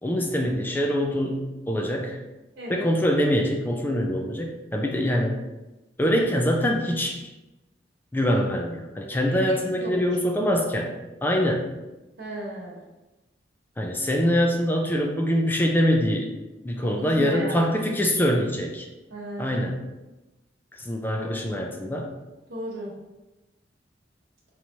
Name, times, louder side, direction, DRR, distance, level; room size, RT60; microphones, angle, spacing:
voice 1, 0.0-2.2 2.7-5.4 6.0-7.2 8.1-10.9 11.2-11.7 13.8-16.3 16.6-18.9 19.4-19.8 20.7-22.1, equal, 10° left, 1 dB, 0.3 m, -24 dB
voice 2, 2.6-2.9 9.3-10.0 12.2-12.8 16.8-17.6 19.1-19.7 21.1-21.4 22.5-22.9, right 1 dB, 80° right, -6 dB, 1.1 m, -35 dB
4.6 x 3.0 x 2.7 m, 1.1 s
head